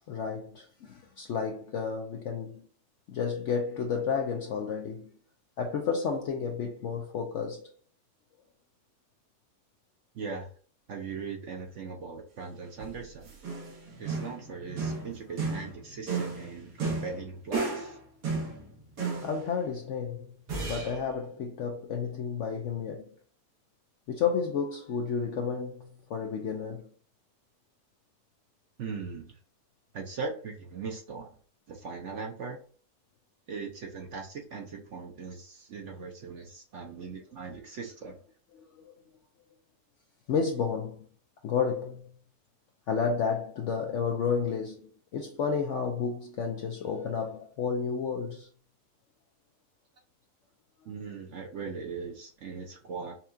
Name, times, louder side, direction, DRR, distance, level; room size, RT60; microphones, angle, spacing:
voice 1, 0.1-2.7 3.1-5.1 5.6-7.7 19.2-20.3 20.6-23.2 24.1-26.9 38.5-38.9 40.3-41.1 41.4-42.1 42.9-48.5, left 6 dB, 65° left, 0.7 m, -31 dB
voice 2, 10.1-10.5 10.9-13.3 14.0-18.0 28.8-29.4 29.9-31.3 31.7-32.6 33.5-38.2 50.8-53.1, right 5 dB, 60° right, 0.9 m, -39 dB
sound 1, 12.8-18.0 18.2-19.5 20.5-21.0, right 4 dB, 85° right, 1.8 m, -34 dB
5.5 x 2.3 x 2.6 m
omnidirectional pair, 1.7 m